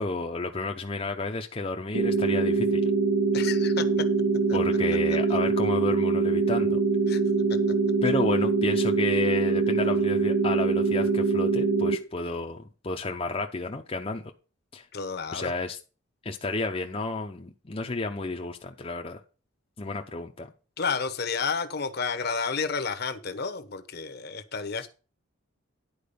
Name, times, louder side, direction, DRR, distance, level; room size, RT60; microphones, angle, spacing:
voice 1, 0.0-2.8 4.5-6.8 8.0-14.2 14.7-14.9 15.3-15.8 16.2-19.2 19.8-20.5 24.8-24.9, left 3 dB, 25° left, 0.7 m, -31 dB
sound 1, 1.9-12.0, right 4 dB, 90° right, 1.1 m, -24 dB
voice 2, 3.3-3.8 4.5-4.6 7.1-7.2 14.9-15.5 20.8-24.9, left 5 dB, 50° left, 0.9 m, -31 dB
10.5 x 4.6 x 6.8 m
head